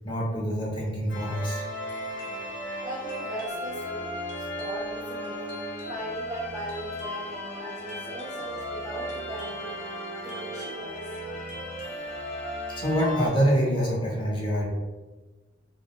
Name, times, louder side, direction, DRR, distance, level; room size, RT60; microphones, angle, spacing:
voice 1, 0.0-1.7 12.8-14.7, equal, 25° left, -3 dB, 0.7 m, -25 dB
sound 1, 1.1-13.3, equal, 70° left, 0.7 m, -35 dB
voice 2, 2.8-5.4 5.9-9.8 10.2-11.1, right 1 dB, 20° right, -5 dB, 0.4 m, -39 dB
3.7 x 2.1 x 2.3 m, 1.2 s
head